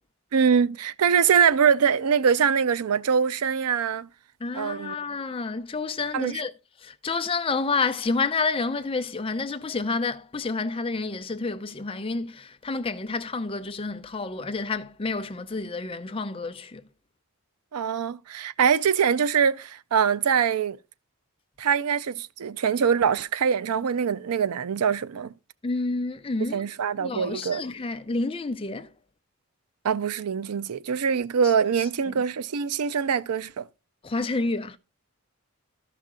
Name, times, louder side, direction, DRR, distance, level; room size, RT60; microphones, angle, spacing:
voice 1, 0.3-4.1 4.5-5.0 6.1-6.4 17.7-20.8 21.6-25.3 26.5-27.6 29.8-33.7, right 7 dB, 85° right, 0.5 m, -23 dB
voice 2, 4.4-6.5 6.8-16.8 25.6-26.7 27.0-28.9 32.1-32.2 34.0-34.8, left 3 dB, 25° left, 0.5 m, -29 dB
13.0 x 5.8 x 3.7 m
head